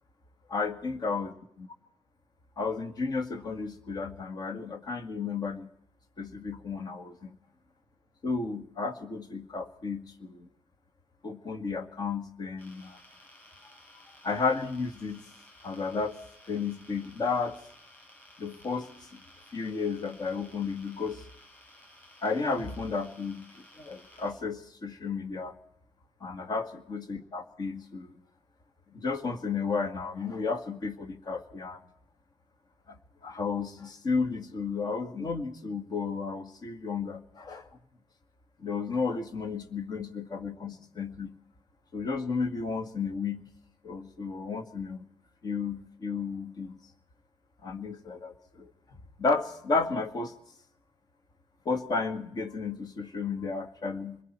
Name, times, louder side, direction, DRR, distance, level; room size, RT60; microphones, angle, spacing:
voice 1, 0.5-1.7 2.6-5.7 6.2-7.4 8.2-10.5 11.2-13.0 14.2-15.2 15.6-16.2 16.5-17.6 18.4-19.2 19.5-21.2 22.2-25.5 26.2-28.1 28.9-31.8 32.9-33.0 33.2-37.7 38.6-41.4 41.9-43.4 43.8-45.1 45.4-46.8 47.6-48.7 49.2-50.3 51.7-54.2, left 4 dB, 45° left, 7 dB, 2.1 m, -33 dB
sound 1, 12.6-24.3, left 1 dB, 20° left, 7.9 m, -56 dB
26.5 x 21.5 x 4.6 m, 0.69 s
cardioid pair, 145°, 10 cm